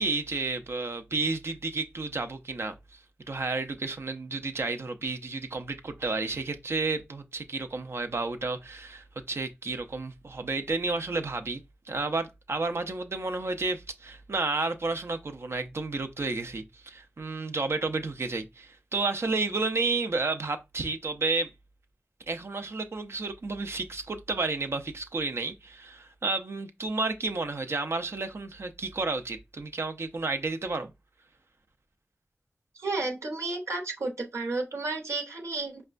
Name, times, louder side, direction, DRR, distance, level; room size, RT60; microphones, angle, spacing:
voice 1, 0.0-3.0 3.3-11.6 11.9-21.5 22.3-30.9, right 3 dB, 65° right, 0.5 m, -31 dB
voice 2, 32.7-35.8, right 3 dB, 85° right, 0.9 m, -32 dB
5.2 x 2.2 x 2.4 m
wide cardioid pair, 55°, 5 cm